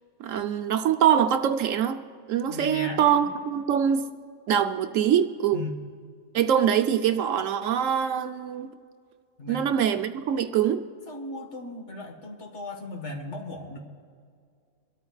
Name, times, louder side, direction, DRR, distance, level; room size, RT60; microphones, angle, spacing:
voice 1, 0.2-2.0 2.3-4.1 4.5-5.6 6.3-8.7 9.5-10.8, right 9 dB, 70° right, 7 dB, 1.0 m, -24 dB
voice 2, 2.5-3.3 5.5-5.8 9.4-9.7 11.1-13.8, left 2 dB, 60° left, 3 dB, 1.7 m, -37 dB
25.0 x 13.0 x 2.4 m, 2.2 s
omnidirectional pair, 1.4 m